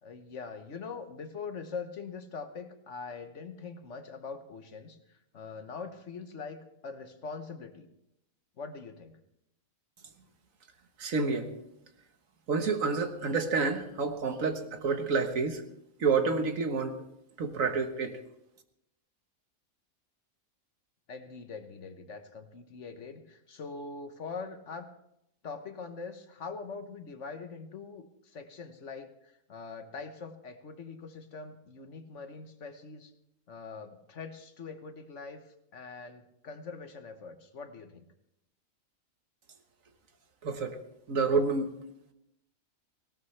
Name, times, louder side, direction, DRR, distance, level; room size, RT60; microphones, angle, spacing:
voice 1, 0.0-7.9 8.6-9.1 21.1-24.9 25.4-33.1 33.5-38.1, left 4 dB, 60° left, 8 dB, 1.4 m, -43 dB
voice 2, 11.0-11.5 12.5-15.6 16.0-17.0 17.4-18.2 40.4-40.8 41.1-41.7, right 4 dB, 70° right, 7 dB, 1.7 m, -29 dB
18.5 x 17.5 x 3.3 m, 0.81 s
omnidirectional pair, 1.5 m